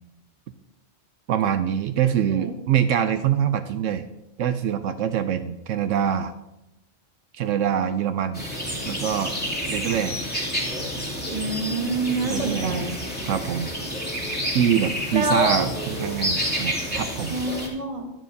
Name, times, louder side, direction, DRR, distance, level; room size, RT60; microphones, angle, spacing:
voice 1, 1.3-4.0 4.4-6.3 7.3-8.4 8.9-9.3 9.7-10.2 12.2-12.9 13.2-13.7 14.5-17.3, right 9 dB, 80° right, 9 dB, 0.9 m, -24 dB
sound 1, 8.3-17.7, equal, 5° left, 2.4 m, -29 dB
voice 2, 11.3-13.0 15.1-15.7 17.3-18.1, right 2 dB, 30° right, 3 dB, 1.3 m, -26 dB
14.5 x 10.5 x 2.7 m, 0.92 s
omnidirectional pair, 1.3 m